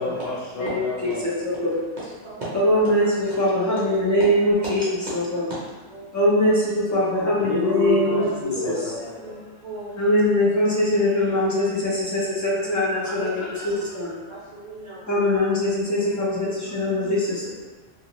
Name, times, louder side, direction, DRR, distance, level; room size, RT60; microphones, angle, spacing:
voice 1, 0.0-1.4 3.0-3.6 7.1-9.7 13.0-13.9, left 1 dB, 60° left, -6 dB, 0.8 m, -32 dB
voice 2, 1.4-1.8 2.6-4.8 5.1-5.4 6.1-8.7 10.0-14.1 15.1-17.5, left 1 dB, 25° left, -7 dB, 0.3 m, -22 dB
voice 3, 2.2-2.6 5.1-5.5 5.9-6.1 8.1-8.3 8.5-8.8 9.2-9.9 13.2-13.3 14.3-15.0 16.4-16.5, right 2 dB, 45° right, -9 dB, 0.6 m, -36 dB
2.6 x 2.5 x 2.9 m, 1.3 s
omnidirectional pair, 1.3 m